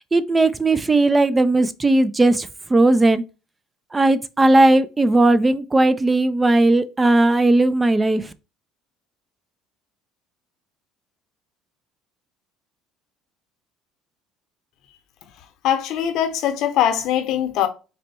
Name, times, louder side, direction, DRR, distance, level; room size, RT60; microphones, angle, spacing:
voice 1, 0.1-3.2 3.9-8.3, right 2 dB, 20° right, 0.4 m, -17 dB
voice 2, 15.6-17.7, left 10 dB, 70° left, 0.8 m, -21 dB
4.1 x 2.2 x 4.1 m
supercardioid pair, 85°, 0 cm